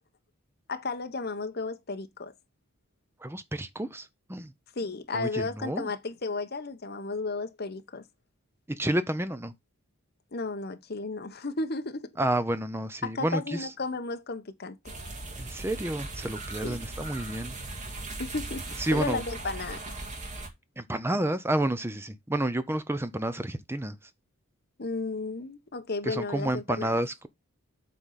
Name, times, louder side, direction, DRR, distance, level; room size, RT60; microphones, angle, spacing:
voice 1, 0.7-2.3 4.7-8.0 10.3-12.1 13.0-14.8 16.6-16.8 18.2-19.8 24.8-27.0, left 3 dB, 45° left, 1.0 m, -33 dB
voice 2, 3.2-4.5 5.1-5.9 8.7-9.5 12.2-13.7 15.4-17.6 18.8-19.2 20.8-24.0 26.0-27.3, right 1 dB, 10° right, 0.6 m, -30 dB
sound 1, 14.8-20.5, right 2 dB, 35° right, 2.0 m, -38 dB
8.0 x 3.9 x 5.7 m
head